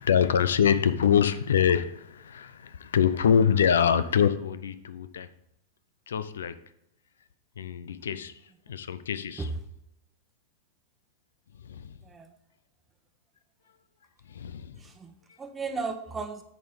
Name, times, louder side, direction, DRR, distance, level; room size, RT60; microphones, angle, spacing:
voice 1, 0.0-5.3 6.1-6.6 7.6-8.3 8.7-9.5 11.6-12.0 14.3-14.8, left 8 dB, 85° left, 0.5 m, -25 dB
voice 2, 12.0-12.4 14.7-16.4, right 4 dB, 15° right, 1.0 m, -35 dB
8.6 x 4.2 x 5.1 m
hypercardioid pair, 115°, 0 cm